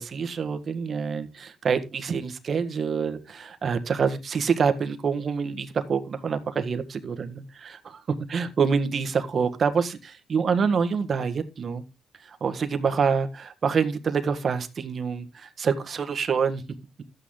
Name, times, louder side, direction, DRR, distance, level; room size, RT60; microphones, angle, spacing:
voice 1, 0.0-8.0 8.3-11.8 12.2-16.6, right 6 dB, 50° right, 9 dB, 1.6 m, -26 dB
12.5 x 8.9 x 3.8 m, 0.27 s
cardioid pair, 90°, 0 cm